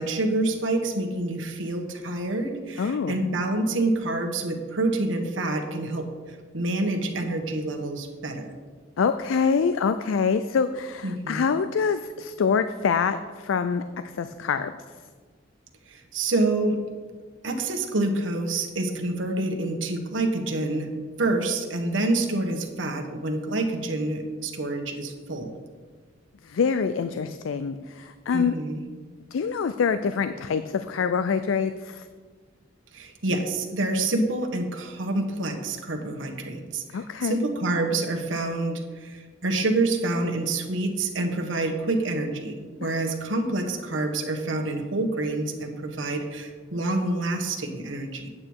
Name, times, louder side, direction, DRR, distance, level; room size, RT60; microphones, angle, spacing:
voice 1, 0.0-8.5 11.0-11.5 15.9-16.8 17.4-20.9 21.2-25.5 28.3-28.8 32.9-48.3, right 2 dB, 80° right, 4 dB, 1.2 m, -27 dB
voice 2, 2.8-3.2 9.0-13.8 14.1-14.7 26.4-28.6 29.3-32.1 36.9-37.5 42.8-42.9, left 6 dB, 90° left, 11 dB, 0.4 m, -25 dB
8.7 x 8.6 x 4.7 m, 1.5 s
head